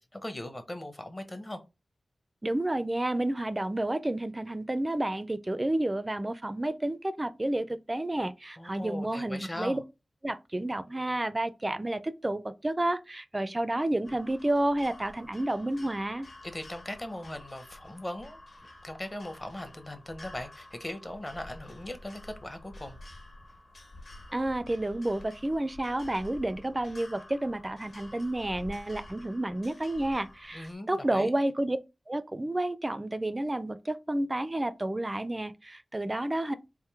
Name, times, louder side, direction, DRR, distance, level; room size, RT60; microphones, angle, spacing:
voice 1, 0.0-1.6 8.6-9.8 16.4-18.4 18.8-23.0 30.5-31.3, left 1 dB, 20° left, 0.7 m, -39 dB
voice 2, 2.4-9.8 10.2-16.3 24.3-31.8 32.1-36.6, right 1 dB, 20° right, 0.4 m, -30 dB
sound 1, 14.0-30.7, left 1 dB, 55° left, 1.4 m, -50 dB
3.6 x 2.6 x 4.6 m
wide cardioid pair, 110°, 0 cm